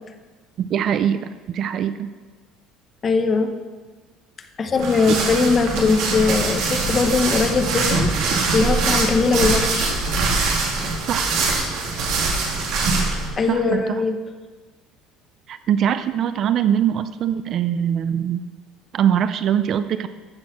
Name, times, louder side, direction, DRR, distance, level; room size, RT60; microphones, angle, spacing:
voice 1, 0.6-2.1 5.1-5.2 5.7-5.8 11.1-11.4 13.5-14.0 15.5-18.4 18.9-20.1, right 9 dB, 35° right, 12 dB, 0.4 m, -22 dB
voice 2, 3.0-3.5 4.6-10.0 13.4-14.2, left 4 dB, 20° left, 7 dB, 0.8 m, -20 dB
sound 1, 4.8-13.3, right 3 dB, 55° right, 2.2 m, -22 dB
14.0 x 6.3 x 5.9 m, 1.4 s
cardioid pair, 170°, 0 cm